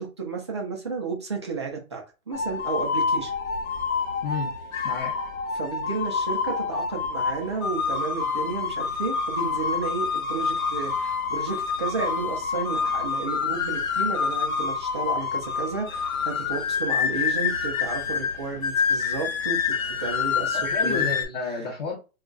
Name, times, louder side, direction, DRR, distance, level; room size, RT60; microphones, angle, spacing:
voice 1, 0.0-3.3 5.5-21.7, right 4 dB, 20° right, 0 dB, 0.4 m, -32 dB
sound 1, 2.3-21.3, left 5 dB, 70° left, 1.1 m, -27 dB
voice 2, 4.8-5.2 20.5-21.9, left 4 dB, 30° left, -2 dB, 0.8 m, -31 dB
2.3 x 2.3 x 3.8 m, 0.30 s
hypercardioid pair, 150°, 42 cm